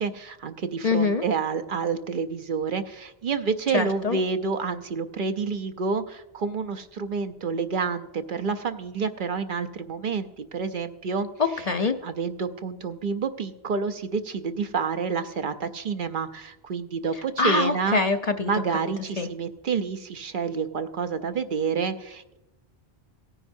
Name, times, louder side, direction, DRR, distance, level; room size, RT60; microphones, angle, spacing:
voice 1, 0.0-11.3 12.0-18.0 18.5-22.4, right 5 dB, 60° right, 8 dB, 0.8 m, -29 dB
voice 2, 0.8-1.2 3.7-4.2 11.4-11.9 17.4-18.5 19.2-19.3, left 4 dB, 45° left, 7 dB, 0.6 m, -24 dB
17.0 x 9.9 x 2.7 m, 0.95 s
omnidirectional pair, 1.0 m